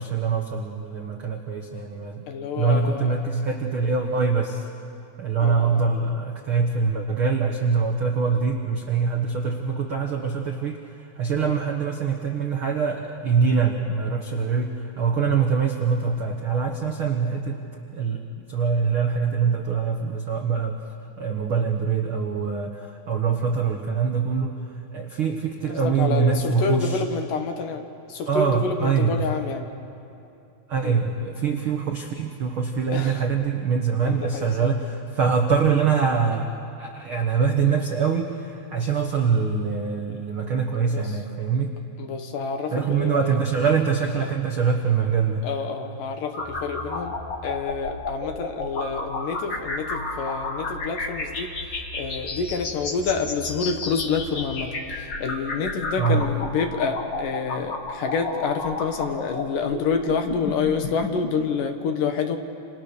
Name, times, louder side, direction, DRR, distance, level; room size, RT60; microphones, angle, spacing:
voice 1, 0.0-2.2 2.6-4.7 5.2-10.8 11.1-17.6 17.9-20.8 21.2-24.6 24.9-27.0 28.3-29.2 30.7-36.5 36.8-41.7 42.7-45.4 56.0-56.3, right 5 dB, 75° right, 3 dB, 1.2 m, -24 dB
voice 2, 2.3-3.2 5.4-5.8 11.4-11.6 25.6-29.7 30.8-31.0 32.9-33.3 34.1-34.7 40.9-41.2 42.0-43.4 44.2-44.3 45.4-47.1 47.4-62.4, left 5 dB, 65° left, 6 dB, 2.7 m, -28 dB
sound 1, 46.3-61.3, left 2 dB, 40° left, 1.8 m, -32 dB
29.5 x 28.0 x 6.8 m, 2.7 s
omnidirectional pair, 4.7 m